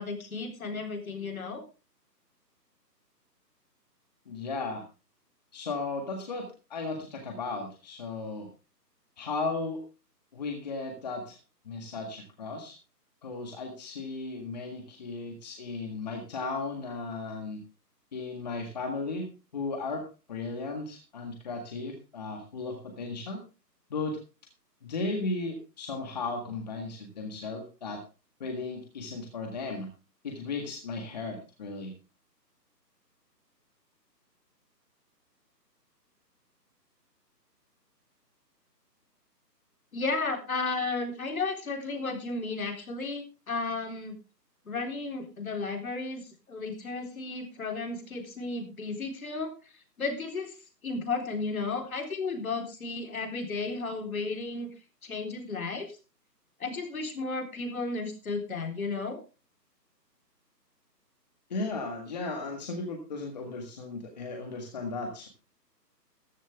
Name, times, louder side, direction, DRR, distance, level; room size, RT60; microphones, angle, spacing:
voice 1, 0.0-1.6 39.9-44.2 44.7-49.5 50.0-50.6 50.8-54.7 55.0-56.0 56.6-59.2, left 3 dB, 55° left, 4 dB, 3.9 m, -33 dB
voice 2, 4.3-4.8 5.5-8.5 9.2-9.8 10.3-11.4 11.7-12.8 13.2-17.6 18.1-19.3 19.5-23.4 23.9-24.2 24.8-28.0 28.4-29.9 30.2-31.9 61.5-65.3, left 3 dB, 25° left, 3 dB, 1.8 m, -35 dB
14.5 x 12.0 x 3.5 m, 0.31 s
hypercardioid pair, 170°, 50 cm